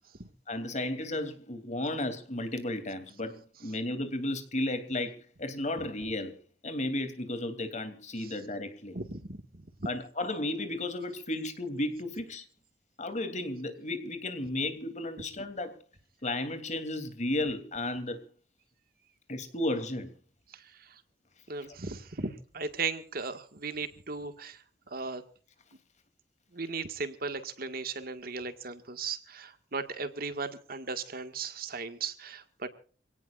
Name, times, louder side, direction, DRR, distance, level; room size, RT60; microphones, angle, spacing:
voice 1, 0.5-6.3 6.6-9.0 9.8-12.4 13.0-15.7 16.2-18.2 19.3-20.1, left 1 dB, 45° left, 9 dB, 3.0 m, -33 dB
voice 2, 8.9-9.9 20.5-21.0 21.5-25.2 26.5-32.7, right 4 dB, 60° right, 8 dB, 1.8 m, -37 dB
27.0 x 18.0 x 2.5 m, 0.41 s
head